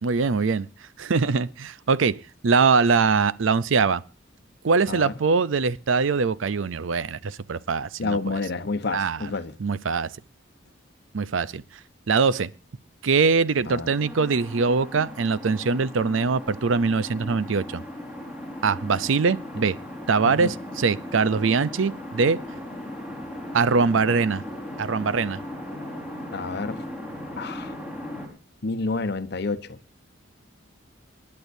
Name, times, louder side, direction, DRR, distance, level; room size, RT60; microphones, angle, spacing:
voice 1, 0.0-0.7 1.0-2.2 2.4-4.0 4.6-8.2 8.9-9.3 9.6-10.1 11.1-11.6 12.1-12.5 13.0-17.8 18.6-19.8 20.1-22.4 23.5-24.4 24.8-25.4, right 4 dB, 90° right, 0.6 m, -22 dB
voice 2, 8.0-9.6 13.7-13.9 20.2-20.5 26.3-26.8 27.4-27.7 28.6-29.8, left 3 dB, 60° left, 0.9 m, -29 dB
sound 1, 13.6-28.3, left 1 dB, 5° right, 4.4 m, -37 dB
27.5 x 10.5 x 2.7 m
head